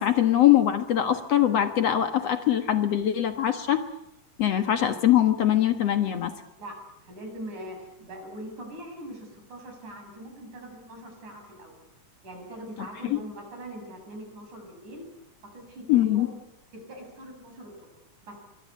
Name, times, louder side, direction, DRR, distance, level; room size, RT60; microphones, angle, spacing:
voice 1, 0.0-3.8 4.4-6.3 13.1-13.2 15.9-16.3, left 11 dB, 60° left, 8 dB, 2.2 m, -22 dB
voice 2, 6.6-11.8 12.2-15.1 15.4-16.3 16.7-17.9 18.2-18.4, right 1 dB, 70° right, 4 dB, 8.6 m, -42 dB
25.0 x 23.5 x 8.3 m, 0.80 s
omnidirectional pair, 3.7 m